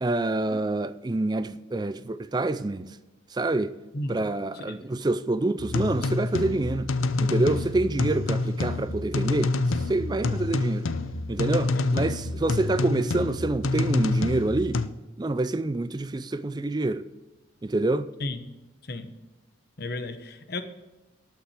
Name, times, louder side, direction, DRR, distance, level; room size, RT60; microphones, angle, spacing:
voice 1, 0.0-2.9 3.3-3.7 4.1-6.9 7.2-9.5 9.9-10.9 11.3-14.8 15.2-17.1 17.6-18.1, right 2 dB, 20° right, 0.4 m, -27 dB
sound 1, 5.6-14.9, left 3 dB, 85° left, 0.6 m, -27 dB
voice 2, 19.8-20.6, left 2 dB, 50° left, 1.0 m, -33 dB
11.5 x 5.9 x 8.2 m
head